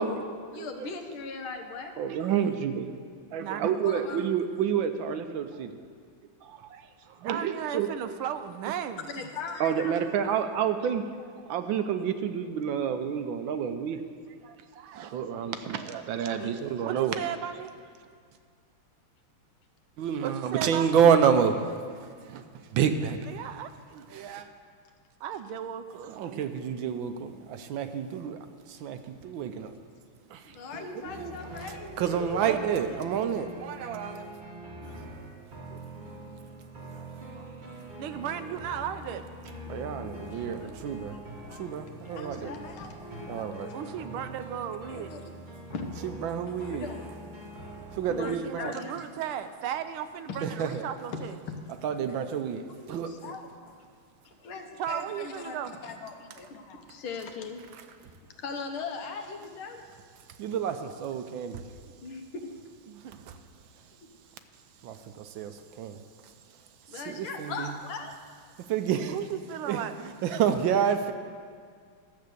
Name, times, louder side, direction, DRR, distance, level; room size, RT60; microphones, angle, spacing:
voice 1, 0.0-0.9 2.0-2.9 3.3-5.7 6.4-6.9 7.2-7.9 9.6-14.0 14.4-17.2 20.0-21.8 22.0-22.4 22.7-23.2 23.9-24.5 26.1-28.4 28.7-29.7 30.3-31.7 32.0-34.3 34.8-35.1 35.7-35.8 36.9-37.0 37.3-37.5 39.7-41.2 41.5-42.5 43.3-43.9 46.2-46.9 47.9-48.7 50.4-50.9 51.8-53.3 60.4-61.6 63.3-63.4 64.8-66.0 66.9-67.7 68.7-69.2 69.7-71.1, right 7 dB, 75° right, 8 dB, 1.3 m, -29 dB
voice 2, 0.5-1.9 3.8-4.3 9.0-10.0 16.4-16.5 30.5-33.1 33.9-34.0 34.8-35.0 40.3-41.2 41.5-43.8 44.9-45.2 45.7-45.9 46.6-47.1 48.1-49.1 50.3-50.4 50.7-50.8 52.7-53.8 54.2-55.6 55.8-57.7 58.1-59.8 62.0-62.5 66.9-68.1, left 4 dB, 75° left, 5 dB, 1.9 m, -40 dB
voice 3, 3.4-3.9 7.2-9.0 16.8-17.7 20.2-21.0 23.3-23.7 25.2-26.4 32.4-32.6 38.0-39.2 43.7-45.1 48.1-51.3 54.8-55.7 62.9-63.1 69.1-70.1, right 9 dB, 90° right, 10 dB, 1.5 m, -35 dB
sound 1, 31.0-48.2, right 1 dB, 30° right, 1.0 m, -44 dB
11.5 x 7.8 x 6.7 m, 2.1 s
omnidirectional pair, 2.3 m